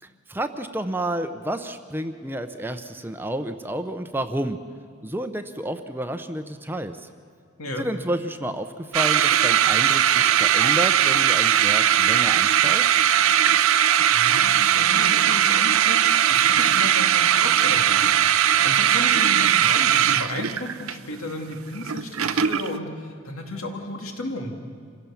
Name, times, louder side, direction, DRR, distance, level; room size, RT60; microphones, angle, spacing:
voice 1, 0.0-4.6 5.0-7.1 7.8-13.0, right 1 dB, 10° right, 8 dB, 0.7 m, -30 dB
sound 1, 8.9-22.8, right 10 dB, 80° right, 0.6 m, -19 dB
voice 2, 14.1-18.0 18.6-24.6, left 1 dB, 80° left, 3 dB, 2.6 m, -33 dB
26.5 x 16.5 x 7.1 m, 2.2 s
head